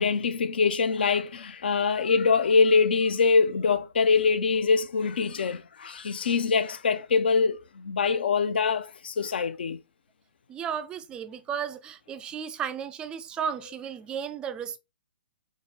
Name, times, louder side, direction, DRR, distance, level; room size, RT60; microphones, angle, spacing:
voice 1, 0.0-9.8, left 5 dB, 65° left, 0.5 m, -24 dB
voice 2, 10.5-14.8, right 8 dB, 15° right, 0.4 m, -34 dB
3.8 x 2.1 x 4.2 m
figure-of-eight pair, 125°, 6 cm